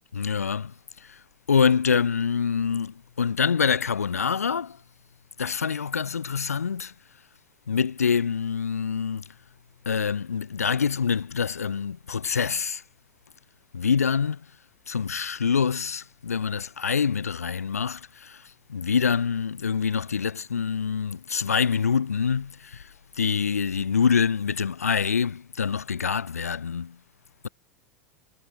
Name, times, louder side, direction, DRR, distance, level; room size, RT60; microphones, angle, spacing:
voice 1, 0.1-0.7 1.0-1.2 1.5-4.8 5.4-6.9 7.7-9.2 9.9-12.8 13.7-14.4 14.9-18.4 18.7-22.9 23.2-27.0, left 6 dB, 85° left, 0.9 m, -25 dB
figure-of-eight pair, 80°, 8 cm